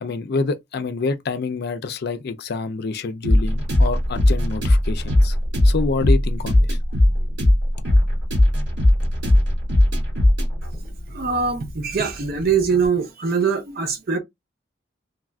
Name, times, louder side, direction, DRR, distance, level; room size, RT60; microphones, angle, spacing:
voice 1, 0.0-5.4 5.6-6.8, left 4 dB, 60° left, 0.4 m, -27 dB
sound 1, 3.2-12.9, left 1 dB, 80° right, 2.1 m, -19 dB
voice 2, 11.1-14.2, right 5 dB, 55° right, 0.7 m, -22 dB
3.3 x 2.4 x 2.2 m
head